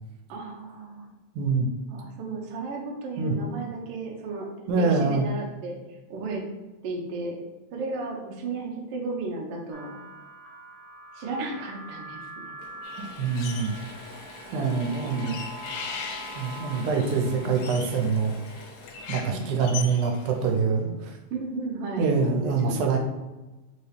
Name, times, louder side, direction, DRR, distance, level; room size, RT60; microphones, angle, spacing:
voice 1, 0.3-1.1 1.9-5.8 6.1-6.4 6.8-7.3 7.7-10.0 11.1-12.5 14.5-15.3 19.3-19.6 21.3-23.0, right 3 dB, 70° right, 0 dB, 1.4 m, -34 dB
voice 2, 1.4-1.7 3.2-3.4 4.7-5.3 13.2-13.7 14.5-15.4 16.4-18.3 19.1-21.1 22.0-23.0, right 4 dB, 85° right, 2 dB, 2.1 m, -25 dB
sound 1, 9.7-17.6, right 2 dB, 35° right, 0.6 m, -44 dB
Mechanisms / Drill, 12.6-21.2, left 2 dB, 75° left, 2.0 m, -46 dB
sound 2, 12.8-14.0 14.3-20.5, left 6 dB, 90° left, 2.0 m, -40 dB
4.7 x 2.8 x 3.3 m, 1.1 s
omnidirectional pair, 3.4 m